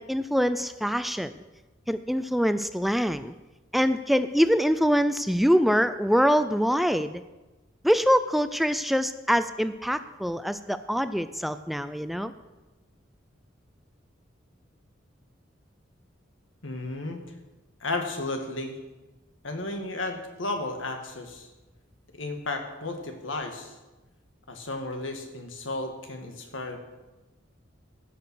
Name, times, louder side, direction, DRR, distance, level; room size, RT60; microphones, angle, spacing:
voice 1, 0.0-1.3 1.9-3.3 3.7-7.2 7.8-12.3, equal, ahead, 12 dB, 0.3 m, -24 dB
voice 2, 16.6-17.2 17.8-18.8 19.4-21.5 22.1-23.7 24.5-26.8, left 2 dB, 90° left, 5 dB, 1.8 m, -33 dB
15.0 x 6.8 x 6.2 m, 1.1 s
head